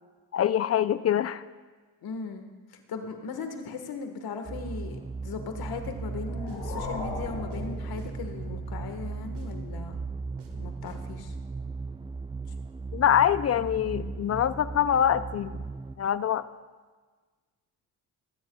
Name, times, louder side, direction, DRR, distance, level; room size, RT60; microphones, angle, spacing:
voice 1, 0.3-1.4 12.9-15.6 16.0-16.5, left 10 dB, 40° left, 15 dB, 0.5 m, -24 dB
voice 2, 2.0-2.5 2.7-10.0 10.6-11.3, left 5 dB, 65° left, 6 dB, 1.5 m, -38 dB
sound 1, 4.4-16.0, right 4 dB, 15° right, 0.5 m, -37 dB
sound 2, 5.8-11.4, right 4 dB, 90° right, 1.6 m, -46 dB
sound 3, 5.9-8.6, left 3 dB, 80° left, 3.6 m, -39 dB
22.5 x 10.5 x 2.3 m, 1.4 s
supercardioid pair, 65°, 40 cm